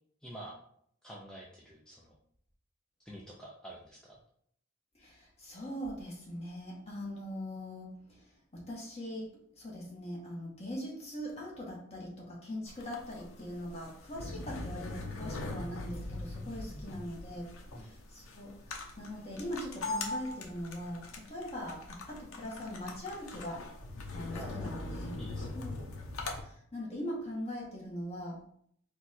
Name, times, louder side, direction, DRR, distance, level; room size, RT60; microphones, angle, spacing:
voice 1, 0.2-0.6 1.0-2.2 3.0-4.2 16.7-17.1 17.7-17.9 24.3-24.8 25.2-25.7, right 1 dB, 5° left, -4 dB, 0.5 m, -48 dB
voice 2, 5.0-7.9 8.5-9.3 9.6-17.5 17.8-23.6 24.1-25.2 25.5-25.9 26.4-28.4, equal, 30° left, -3 dB, 1.3 m, -41 dB
sound 1, 12.7-26.4, left 2 dB, 85° left, 0.7 m, -41 dB
4.3 x 2.4 x 4.1 m, 0.65 s
head